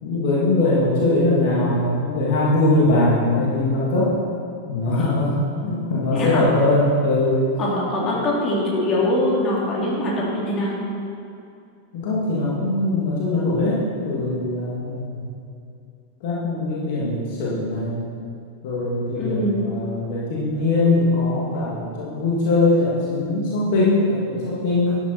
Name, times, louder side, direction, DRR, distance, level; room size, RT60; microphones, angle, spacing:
voice 1, 0.0-4.2 4.7-7.4 11.9-15.3 16.2-18.0 18.6-25.0, left 2 dB, 50° left, -7 dB, 2.7 m, -21 dB
voice 2, 6.1-6.4 7.6-10.8 19.1-19.6 21.6-21.7, left 1 dB, 30° left, -5 dB, 3.2 m, -23 dB
12.0 x 10.0 x 4.5 m, 2.5 s
figure-of-eight pair, 90°, 0 cm